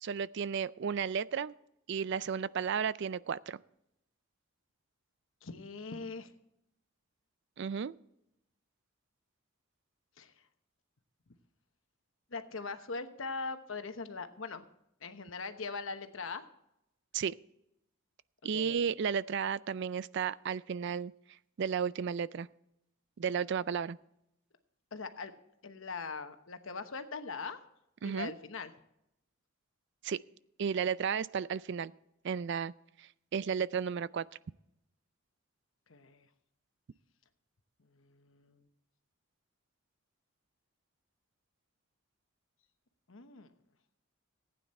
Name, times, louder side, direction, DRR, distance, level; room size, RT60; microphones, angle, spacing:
voice 1, 0.0-1.5 1.9-3.6 7.6-7.9 17.1-17.3 18.4-21.1 21.6-22.5 23.2-24.0 28.0-28.3 30.0-30.2 30.6-31.9 32.2-32.7 33.0-34.3, right 7 dB, 55° right, 19 dB, 0.4 m, -33 dB
voice 2, 5.4-6.3 10.2-10.3 12.3-14.6 15.0-16.4 18.5-18.9 24.9-25.3 25.6-27.6 28.0-28.7 35.9-36.3 37.8-38.7 43.1-43.5, left 4 dB, 70° left, 8 dB, 1.1 m, -41 dB
15.5 x 9.4 x 4.3 m, 0.81 s
head